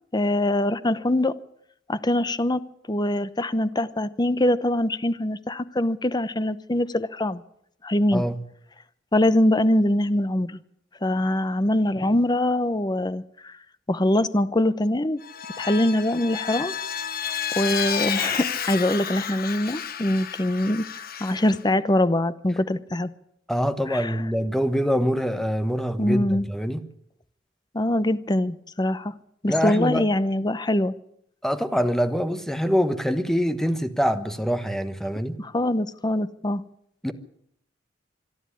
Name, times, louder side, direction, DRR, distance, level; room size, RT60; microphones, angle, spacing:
voice 1, 0.1-1.4 1.9-7.4 7.8-8.2 9.1-10.6 11.0-13.5 13.9-15.2 15.6-16.7 17.6-23.1 23.9-24.2 26.0-26.4 27.7-29.1 29.4-30.9 35.4-36.6, left 1 dB, 25° left, 0.8 m, -23 dB
Vehicle, 15.2-21.6, left 8 dB, 55° left, 1.2 m, -31 dB
voice 2, 23.5-26.8 29.5-30.0 31.4-35.4 37.0-37.1, equal, ahead, 1.3 m, -24 dB
26.0 x 11.0 x 9.9 m
head